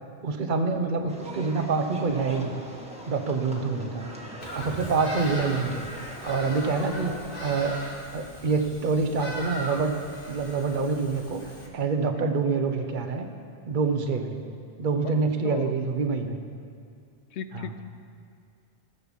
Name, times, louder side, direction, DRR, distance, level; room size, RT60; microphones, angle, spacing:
voice 1, 0.2-2.6 3.1-4.1 4.5-5.9 6.2-7.1 7.4-7.8 8.1-10.0 10.3-13.3 13.7-14.3 14.8-16.4 17.5-17.7, right 4 dB, 50° right, 6 dB, 1.0 m, -26 dB
sound 1, 1.1-7.6, right 1 dB, 5° right, 1.4 m, -41 dB
Bird vocalization bird call bird song, 4.4-11.7, equal, 50° left, 2.0 m, -39 dB
voice 2, 17.3-17.8, left 8 dB, 85° left, 11 dB, 1.0 m, -37 dB
16.0 x 6.7 x 7.2 m, 2.3 s
omnidirectional pair, 1.1 m